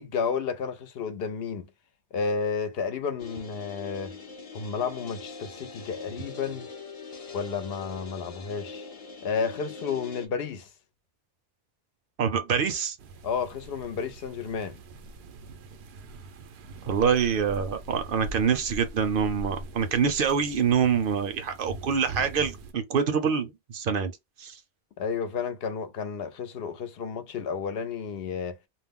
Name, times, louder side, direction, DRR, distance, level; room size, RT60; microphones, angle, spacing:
voice 1, 0.0-1.6 2.1-4.1 4.5-6.7 7.3-8.9 9.2-10.7 13.2-14.8 25.0-28.6, left 6 dB, 75° left, 0.8 m, -31 dB
sound 1, 3.2-10.3, left 4 dB, 50° left, 0.5 m, -42 dB
voice 2, 12.2-13.0 16.8-24.1 24.4-24.6, right 6 dB, 65° right, 0.7 m, -25 dB
sound 2, 13.0-22.7, right 2 dB, 90° right, 0.9 m, -42 dB
2.3 x 2.0 x 3.5 m
omnidirectional pair, 1.1 m